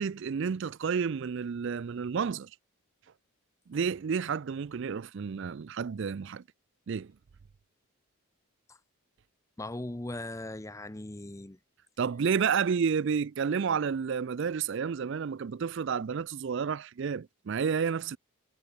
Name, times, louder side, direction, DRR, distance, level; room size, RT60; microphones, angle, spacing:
voice 1, 0.0-2.5 3.7-6.4 6.9-7.1 12.0-18.2, right 6 dB, 55° right, 0.4 m, -30 dB
voice 2, 9.6-11.6, left 1 dB, 15° left, 0.6 m, -39 dB
head